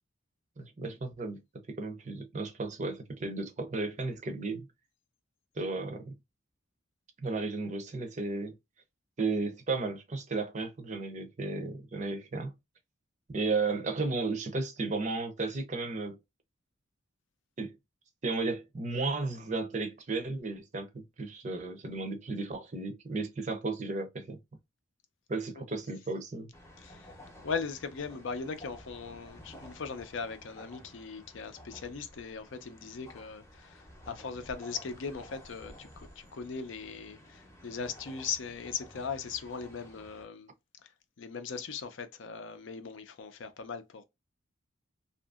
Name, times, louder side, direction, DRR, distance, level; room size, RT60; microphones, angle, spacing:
voice 1, 0.6-1.4 1.7-4.7 5.6-6.2 7.2-8.6 9.2-12.5 13.3-16.2 17.6-17.7 18.2-24.4 25.3-26.5, right 3 dB, 35° right, 0.5 m, -34 dB
sound 1, 26.5-40.2, equal, 15° left, 0.7 m, -52 dB
voice 2, 26.8-27.1 27.4-40.5 41.2-44.1, left 5 dB, 70° left, 0.5 m, -39 dB
2.7 x 2.5 x 2.3 m
head